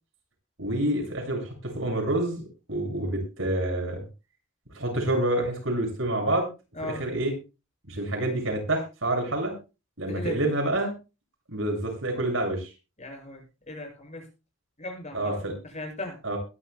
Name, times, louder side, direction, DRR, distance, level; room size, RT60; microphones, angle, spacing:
voice 1, 0.6-4.0 4.7-6.5 6.8-7.3 7.9-9.5 10.0-10.9 11.5-12.7 15.1-15.5 16.2-16.4, right 1 dB, 85° right, 2 dB, 7.1 m, -28 dB
voice 2, 10.1-10.4 13.0-14.3 14.8-15.3 15.6-16.2, left 1 dB, 35° left, 2 dB, 7.4 m, -37 dB
21.5 x 11.0 x 2.3 m, 0.30 s
head